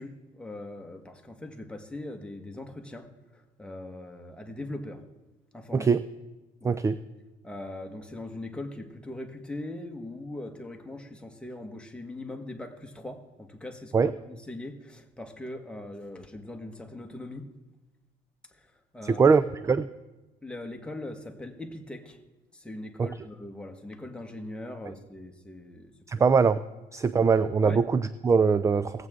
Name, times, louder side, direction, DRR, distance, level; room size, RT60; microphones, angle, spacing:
voice 1, 0.0-3.1 3.3-5.0 5.5-5.9 6.6-6.8 7.4-17.5 18.5-19.3 20.4-22.2 22.5-26.2 27.6-27.8, left 1 dB, 5° left, 3 dB, 1.3 m, -41 dB
voice 2, 6.6-7.0 13.9-14.1 19.0-19.9 23.0-23.1 26.1-26.6 26.9-29.1, right 5 dB, 20° right, 14 dB, 0.3 m, -22 dB
19.0 x 8.0 x 3.7 m, 1.1 s
cardioid pair, 110°, 17 cm